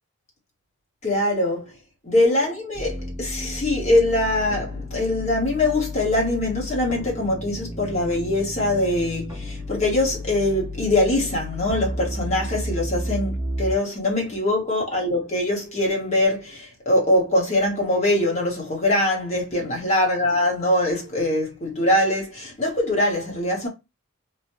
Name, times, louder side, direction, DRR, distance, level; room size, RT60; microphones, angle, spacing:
voice 1, 1.0-1.7 2.0-23.7, left 1 dB, 35° left, 1.1 m, -23 dB
sound 1, 2.7-13.7, equal, 20° right, 0.7 m, -32 dB
3.0 x 2.1 x 2.9 m
head